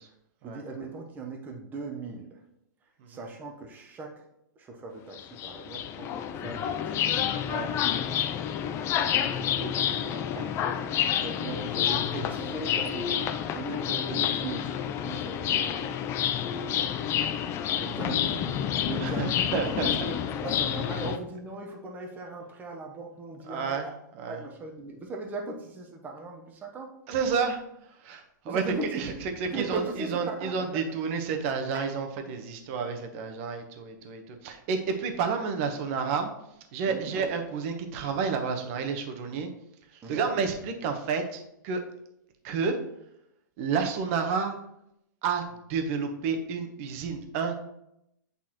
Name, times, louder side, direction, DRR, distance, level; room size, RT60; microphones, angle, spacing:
voice 1, 0.4-2.4 3.1-4.1 4.6-7.1 9.1-10.7 11.2-16.0 16.4-17.0 17.8-18.5 18.8-23.9 24.3-26.9 28.4-29.2 29.5-30.8 36.9-37.2 40.0-40.3, right 3 dB, 15° right, 1 dB, 0.9 m, -39 dB
sound 1, 5.1-21.2, left 9 dB, 25° left, 0.4 m, -29 dB
voice 2, 19.0-19.9 23.5-23.9 24.2-24.4 27.1-27.6 28.0-28.6 28.9-36.3 36.7-39.5 40.1-41.8 42.4-42.8 43.6-44.6 45.2-45.4 45.7-47.5, right 5 dB, 45° right, 5 dB, 1.0 m, -30 dB
8.6 x 4.0 x 3.0 m, 0.80 s
hypercardioid pair, 145°, 11 cm